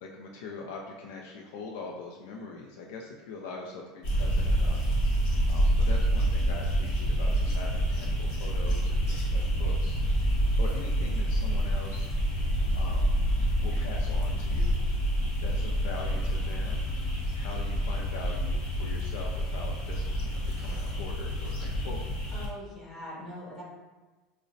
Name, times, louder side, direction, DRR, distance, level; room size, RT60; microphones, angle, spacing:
voice 1, 0.0-10.3 10.6-12.1 12.7-13.2 13.6-14.8 15.4-16.9 17.3-22.4, left 3 dB, 85° left, -1 dB, 0.4 m, -43 dB
sound 1, 4.0-22.5, equal, 60° left, 0.9 m, -27 dB
voice 2, 22.3-23.6, equal, 15° left, -8 dB, 1.3 m, -42 dB
4.7 x 2.1 x 2.5 m, 1.3 s
supercardioid pair, 145°, 0 cm